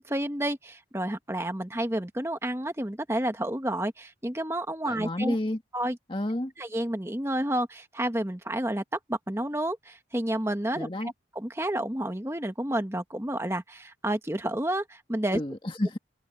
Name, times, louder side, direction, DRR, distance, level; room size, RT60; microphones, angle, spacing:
voice 1, 0.0-5.4 5.7-6.0 6.6-15.4, right 1 dB, 15° right, 1.3 m, -30 dB
voice 2, 4.8-5.6 6.1-6.5 10.8-11.1 15.3-16.0, left 1 dB, 30° left, 1.8 m, -30 dB
head